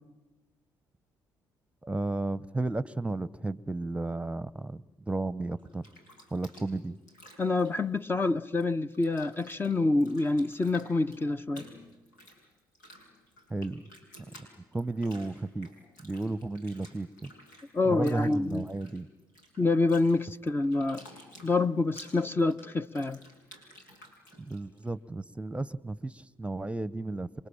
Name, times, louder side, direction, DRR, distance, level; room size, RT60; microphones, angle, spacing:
voice 1, 1.8-5.8 6.3-6.9 13.5-13.9 14.7-15.7 16.0-17.3 17.8-19.1 24.4-27.5, right 2 dB, 10° right, 1.0 m, -33 dB
Bathtub (filling or washing), 5.6-8.6 8.9-24.9, equal, 90° left, 5.8 m, -54 dB
voice 2, 7.4-11.7 17.7-18.7 19.6-21.0 21.4-23.2, left 3 dB, 20° left, 0.9 m, -27 dB
28.0 x 23.0 x 8.8 m
hypercardioid pair, 50°, 10 cm